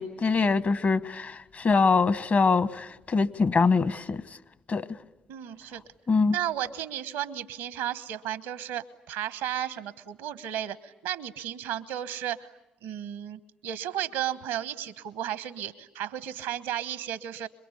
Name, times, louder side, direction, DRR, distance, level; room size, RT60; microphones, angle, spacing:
voice 1, 0.0-4.2 4.7-4.9 6.1-6.4, left 4 dB, 50° left, 1.3 m, -24 dB
voice 2, 5.3-5.8 6.3-12.5 12.8-17.5, right 11 dB, 85° right, 1.1 m, -34 dB
26.5 x 22.5 x 9.9 m
hypercardioid pair, 45°, 4 cm